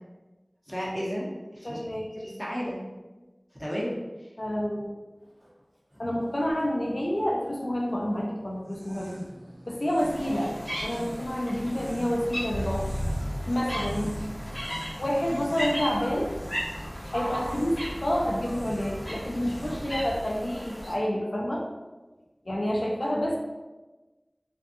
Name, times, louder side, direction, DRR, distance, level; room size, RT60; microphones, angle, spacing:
voice 1, 0.7-1.8 2.2-2.8 3.6-4.3, equal, ahead, -6 dB, 0.8 m, -33 dB
voice 2, 1.6-2.3 4.4-5.0 6.0-9.2 9.7-10.5 10.8-12.8 13.3-14.1 15.0-16.3 17.0-21.6 22.5-23.4, equal, 65° left, -2 dB, 0.3 m, -29 dB
Motor vehicle (road), 5.3-5.6 5.9-20.4 20.8-21.2, equal, 45° right, 0.9 m, -40 dB
sound 1, 8.6-20.1, right 1 dB, 75° right, 0.3 m, -45 dB
sound 2, 10.0-20.9, equal, 45° left, 0.9 m, -37 dB
2.5 x 2.2 x 2.5 m, 1.2 s
wide cardioid pair, 40°, 0 cm